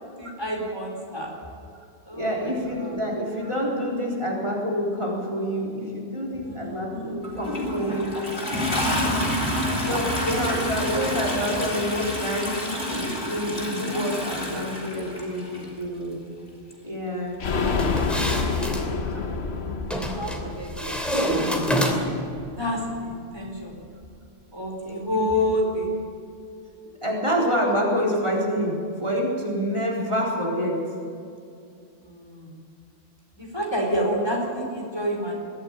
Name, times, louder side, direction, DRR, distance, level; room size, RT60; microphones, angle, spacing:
voice 1, 0.2-1.3 2.1-3.0 6.4-7.2 7.7-8.5 9.8-11.0 13.9-14.1 14.5-14.6 14.9-15.1 18.2-21.0 22.5-23.8 24.5-25.9 32.0-32.6 33.4-35.4, equal, 25° left, -1 dB, 4.0 m, -30 dB
voice 2, 2.1-8.1 9.9-16.3 16.8-17.4 19.1-19.2 24.9-25.2 27.0-30.8, equal, 30° right, -4 dB, 4.1 m, -27 dB
Toilet flush, 7.2-15.7 16.7-16.8, left 1 dB, 50° left, 3.8 m, -28 dB
sound 1, 17.4-23.0 23.3-23.4 23.7-23.8, left 4 dB, 80° left, 1.4 m, -29 dB
sound 2, 17.7-18.9 19.9-20.4 20.8-22.3, equal, ahead, 2.9 m, -26 dB
22.0 x 14.5 x 8.9 m, 2.4 s
omnidirectional pair, 1.1 m